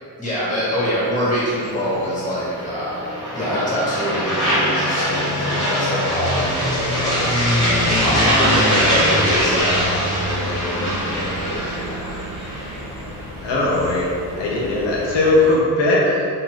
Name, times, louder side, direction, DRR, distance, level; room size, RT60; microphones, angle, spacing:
voice 1, 0.2-12.2, equal, 20° left, -9 dB, 1.4 m, -25 dB
sound 1, 0.7-15.6, equal, 40° left, 1.2 m, -23 dB
sound 2, 6.3-15.6, right 1 dB, 40° right, 0.8 m, -36 dB
voice 2, 13.4-16.3, left 2 dB, 85° left, -4 dB, 0.6 m, -19 dB
2.6 x 2.2 x 3.1 m, 2.4 s
cardioid pair, 80°, 42 cm